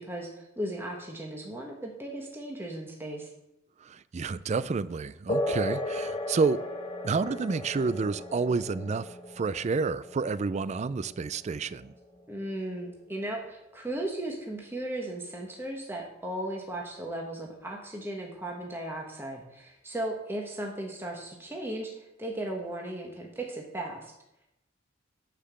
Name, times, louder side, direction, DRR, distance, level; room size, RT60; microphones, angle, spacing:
voice 1, 0.0-3.3 12.3-24.1, right 1 dB, 10° right, 1.3 m, -36 dB
voice 2, 3.8-6.6 7.0-9.1 9.3-11.9, right 4 dB, 35° right, 0.4 m, -29 dB
sound 1, 5.3-13.3, left 1 dB, 25° left, 1.5 m, -36 dB
10.0 x 5.8 x 7.4 m
head